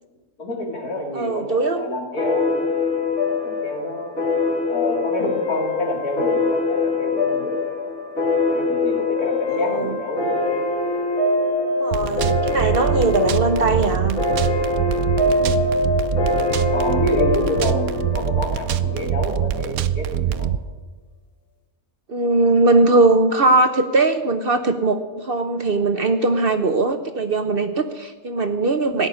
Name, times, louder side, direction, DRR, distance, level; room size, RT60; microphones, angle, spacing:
voice 1, 0.4-2.7 3.4-4.1 4.7-7.7 8.5-10.5 15.4-15.6 16.7-20.5, left 1 dB, 80° left, 0 dB, 3.4 m, -28 dB
voice 2, 1.1-1.9 9.5-10.0 11.7-14.2 22.1-29.1, right 3 dB, 45° right, 8 dB, 0.9 m, -20 dB
sound 1, 2.2-19.3, left 3 dB, 50° left, 3.4 m, -23 dB
sound 2, 11.9-20.6, right 10 dB, 75° right, 1.1 m, -24 dB
17.5 x 6.4 x 9.9 m, 1.2 s
omnidirectional pair, 1.6 m